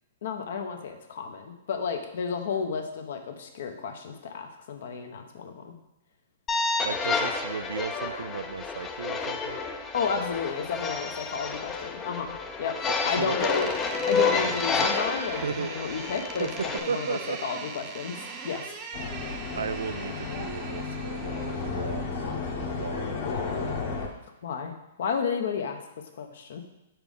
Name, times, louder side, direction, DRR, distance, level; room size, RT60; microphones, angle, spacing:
voice 1, 0.2-5.8 9.9-12.7 13.0-13.7 14.0-18.2 18.4-18.7 24.4-25.8 26.2-26.6, left 6 dB, 65° left, 5 dB, 0.9 m, -32 dB
sound 1, 6.5-16.8, left 4 dB, 20° left, 0.5 m, -30 dB
voice 2, 6.8-9.6 12.9-13.5 14.8-14.9 15.4-15.7 16.4-16.5 16.9-17.4 19.5-22.0 22.7-23.1, right 6 dB, 85° right, 13 dB, 0.3 m, -35 dB
Door, 13.4-21.9, right 4 dB, 25° right, 0.7 m, -40 dB
sound 2, 18.9-24.1, left 4 dB, 45° left, 1.2 m, -33 dB
5.0 x 4.5 x 5.3 m, 0.95 s
hypercardioid pair, 140°, 0 cm